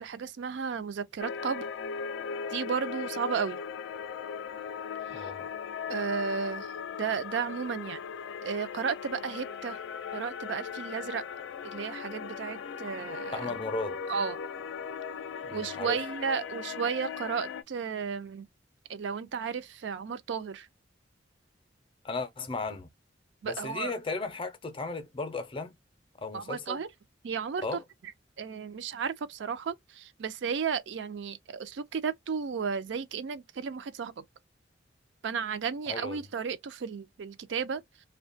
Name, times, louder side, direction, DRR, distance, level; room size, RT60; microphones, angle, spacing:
voice 1, 0.0-1.7 2.5-3.6 5.1-5.3 5.9-6.7 7.0-8.0 8.4-9.8 10.1-11.2 11.6-13.4 14.1-14.4 15.5-18.5 18.9-20.7 23.4-23.9 26.3-26.9 27.2-27.8 28.4-34.1 35.2-37.8, right 6 dB, 65° right, 0.4 m, -33 dB
sound 1, 1.2-17.6, left 6 dB, 80° left, 0.4 m, -38 dB
voice 2, 5.1-5.5 13.3-14.0 15.4-16.0 22.0-22.9 23.4-25.7 26.2-26.8 27.6-27.8 35.9-36.3, left 3 dB, 30° left, 0.5 m, -35 dB
2.7 x 2.2 x 2.6 m
head